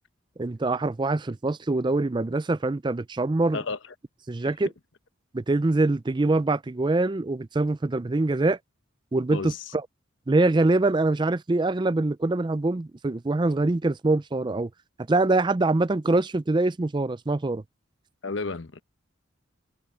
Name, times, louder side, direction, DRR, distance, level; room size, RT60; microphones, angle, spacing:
voice 1, 0.4-3.6 4.3-4.7 5.3-8.6 9.1-9.8 10.3-14.7 15.1-17.6, right 2 dB, 25° right, 0.4 m, -24 dB
voice 2, 3.5-3.9 4.4-4.5 9.3-9.7 18.2-18.8, left 4 dB, 70° left, 1.0 m, -32 dB
head